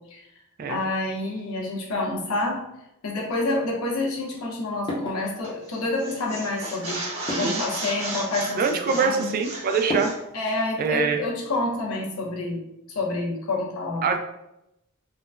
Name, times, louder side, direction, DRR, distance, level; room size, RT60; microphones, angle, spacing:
voice 1, 0.7-2.6 3.0-7.0 7.3-9.3 10.3-12.6 12.9-14.1, left 2 dB, 85° left, -2 dB, 0.8 m, -28 dB
sound 1, 3.3-10.6, left 1 dB, 20° left, 0.6 m, -38 dB
sound 2, 5.4-5.7 6.0-10.2, right 2 dB, 70° right, 1.4 m, -34 dB
voice 2, 8.6-10.1 10.8-11.2 14.0-14.2, right 5 dB, 40° right, 5 dB, 0.3 m, -24 dB
3.6 x 2.1 x 2.4 m, 0.85 s
head